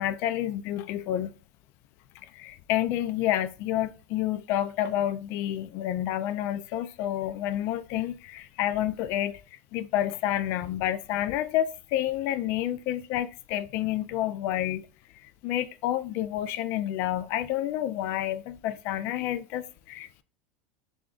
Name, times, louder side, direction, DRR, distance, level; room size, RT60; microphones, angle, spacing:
voice 1, 0.0-1.3 2.2-9.4 9.7-14.9 15.2-20.2, left 12 dB, 45° left, 0.3 m, -29 dB
3.7 x 3.5 x 2.4 m
supercardioid pair, 170°, 6 cm